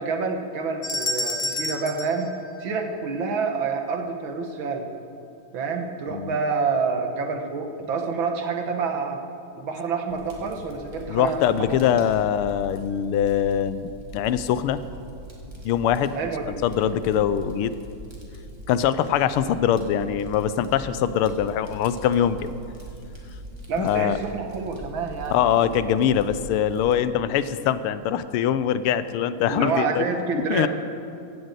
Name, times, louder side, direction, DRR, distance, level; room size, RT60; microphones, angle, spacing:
voice 1, 0.0-2.3 2.6-4.9 5.5-9.2 9.6-12.0 16.1-16.5 23.7-25.4 29.5-30.7, right 5 dB, 65° right, 4 dB, 1.9 m, -28 dB
sound 1, 0.8-3.2, left 1 dB, 40° left, 1.5 m, -30 dB
Fire, 10.1-26.9, right 1 dB, 10° right, 2.1 m, -42 dB
voice 2, 11.1-14.8 15.6-16.1 16.6-17.7 18.7-22.5 23.8-24.2 25.3-30.0 30.5-30.7, left 9 dB, 80° left, 14 dB, 1.5 m, -23 dB
15.5 x 7.8 x 8.1 m, 2.7 s
omnidirectional pair, 2.4 m